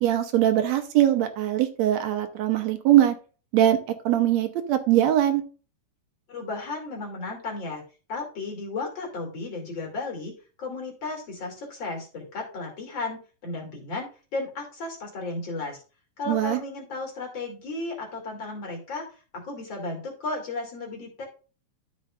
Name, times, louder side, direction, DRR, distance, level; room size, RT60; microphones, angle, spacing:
voice 1, 0.0-3.1 3.5-3.8 4.1-5.4 16.3-16.6, right 12 dB, 75° right, 7 dB, 2.1 m, -21 dB
voice 2, 6.3-7.8 8.1-10.3 10.6-15.8 16.2-21.3, left 3 dB, 40° left, 0 dB, 3.4 m, -34 dB
12.5 x 6.5 x 2.5 m, 0.36 s
omnidirectional pair, 3.3 m